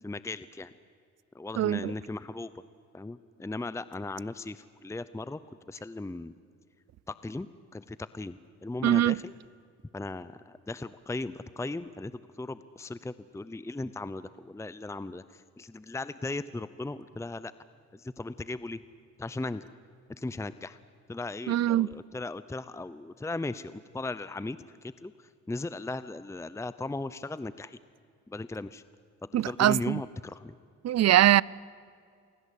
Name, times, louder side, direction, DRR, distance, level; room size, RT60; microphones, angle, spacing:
voice 1, 0.0-0.7 1.3-2.5 2.9-6.3 7.1-7.5 7.7-9.3 9.9-17.5 17.9-18.8 19.2-19.7 20.1-20.8 21.1-24.6 24.8-27.8 28.3-28.8 29.2-30.5, left 2 dB, 10° left, 0.7 m, -37 dB
voice 2, 1.6-1.9 8.8-9.2 21.5-21.9 29.3-30.0 30.8-31.4, right 13 dB, 60° right, 0.6 m, -22 dB
29.0 x 23.0 x 8.4 m
cardioid pair, 90°, 30 cm